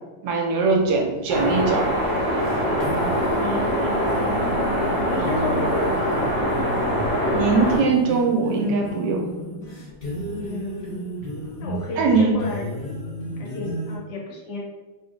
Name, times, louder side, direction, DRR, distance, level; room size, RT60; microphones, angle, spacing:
voice 1, 0.2-1.9 7.3-9.2 12.0-12.3, right 4 dB, 75° right, 1 dB, 1.2 m, -21 dB
sound 1, 0.7-14.0, right 1 dB, 50° left, 0.7 m, -34 dB
sound 2, 1.3-7.8, equal, 15° right, 0.8 m, -23 dB
voice 2, 3.3-4.3 4.6-5.9 10.4-11.0 11.6-12.7 13.4-14.6, left 3 dB, 75° left, -3 dB, 1.4 m, -32 dB
3.1 x 2.4 x 3.7 m, 1.2 s
omnidirectional pair, 1.8 m